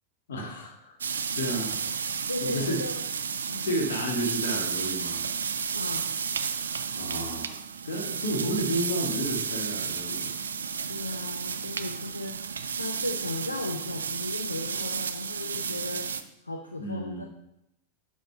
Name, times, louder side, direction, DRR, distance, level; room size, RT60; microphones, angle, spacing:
voice 1, 0.3-1.0 1.3-1.7 2.4-2.8 3.6-5.2 7.0-10.3 11.0-11.3 16.8-17.3, right 1 dB, 60° left, 2 dB, 2.0 m, -32 dB
sound 1, 1.0-16.2, right 6 dB, 70° right, 0.5 m, -32 dB
voice 2, 2.3-2.9 3.5-3.7 5.7-6.1 10.9-16.1 16.4-17.3, left 2 dB, 80° left, 4 dB, 0.7 m, -36 dB
11.5 x 5.2 x 4.6 m, 0.82 s
figure-of-eight pair, 90°, 0 cm